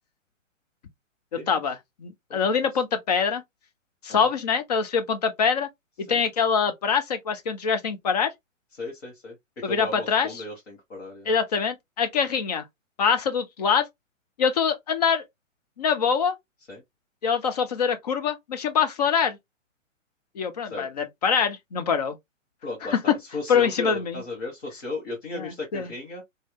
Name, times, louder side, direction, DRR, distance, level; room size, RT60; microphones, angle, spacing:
voice 1, 1.3-3.4 4.0-5.7 6.0-8.3 9.6-10.4 11.3-12.6 13.0-13.9 14.4-15.2 15.8-16.3 17.2-19.4 20.3-22.2 22.9-23.1 23.5-24.2 25.4-25.9, left 6 dB, 30° left, 0.5 m, -24 dB
voice 2, 8.7-11.3 16.7-16.8 20.7-20.9 22.6-26.2, left 2 dB, 55° left, 1.5 m, -35 dB
3.0 x 2.8 x 2.3 m
figure-of-eight pair, 125°, 39 cm